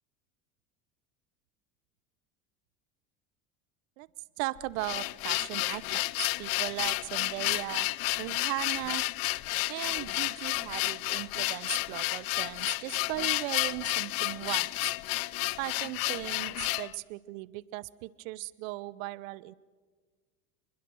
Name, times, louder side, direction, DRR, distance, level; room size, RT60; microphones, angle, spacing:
voice 1, 4.4-9.0 9.7-14.7 15.6-19.5, right 19 dB, 70° right, 20 dB, 1.0 m, -37 dB
sound 1, 4.6-16.9, left 23 dB, 55° left, 0.7 m, -31 dB
27.5 x 21.0 x 6.3 m, 1.5 s
hypercardioid pair, 90°, 42 cm